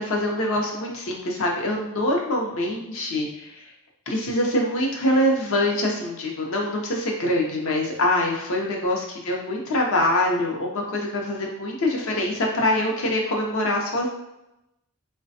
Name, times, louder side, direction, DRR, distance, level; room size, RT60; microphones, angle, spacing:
voice 1, 0.0-3.7 4.1-14.1, left 1 dB, 65° left, 0 dB, 0.6 m, -24 dB
3.2 x 2.1 x 2.7 m, 0.90 s
head